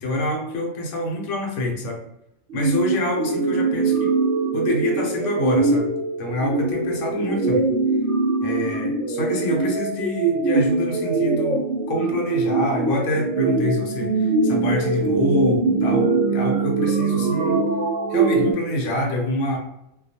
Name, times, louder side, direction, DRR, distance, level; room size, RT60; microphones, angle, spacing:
voice 1, 0.0-2.0 2.5-4.1 4.5-5.9 6.2-7.7 8.4-11.6 11.9-17.6 18.1-19.6, left 1 dB, 70° left, 0 dB, 1.0 m, -26 dB
sound 1, 2.5-18.5, right 3 dB, 65° right, 0.8 m, -22 dB
2.3 x 2.2 x 2.7 m, 0.81 s
omnidirectional pair, 1.4 m